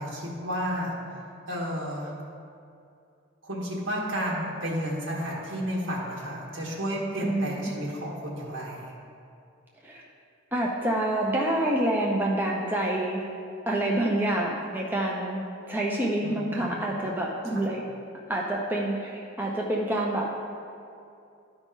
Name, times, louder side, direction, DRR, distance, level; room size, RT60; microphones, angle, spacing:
voice 1, 0.0-2.1 3.4-8.9 16.2-16.8 17.4-17.7, equal, 75° right, -4 dB, 1.5 m, -32 dB
voice 2, 7.2-7.7 9.8-10.0 10.5-13.2 13.7-17.8 18.3-20.5, right 1 dB, 10° right, -3 dB, 0.6 m, -27 dB
12.0 x 5.1 x 3.8 m, 2.5 s
head